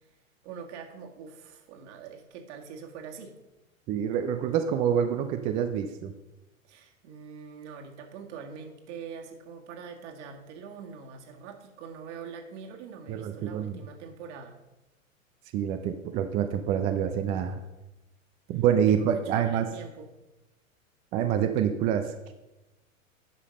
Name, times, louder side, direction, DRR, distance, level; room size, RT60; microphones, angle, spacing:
voice 1, 0.4-3.3 6.7-14.6 18.9-20.1, right 6 dB, 55° right, 3 dB, 1.9 m, -43 dB
voice 2, 3.9-6.1 13.1-13.8 15.5-17.6 18.5-19.7 21.1-22.0, right 9 dB, 20° right, 7 dB, 0.3 m, -26 dB
10.5 x 5.7 x 5.1 m, 1.0 s
hypercardioid pair, 110°, 42 cm